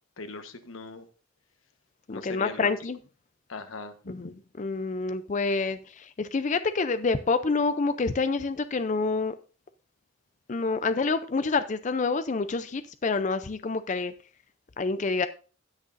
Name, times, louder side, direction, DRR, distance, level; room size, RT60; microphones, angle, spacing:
voice 1, 0.2-1.1 2.1-2.7 3.5-4.3, left 3 dB, 85° left, 1.2 m, -40 dB
voice 2, 2.1-3.0 4.1-9.3 10.5-14.1 14.8-15.3, left 4 dB, 35° left, 0.4 m, -27 dB
18.5 x 6.5 x 2.6 m
head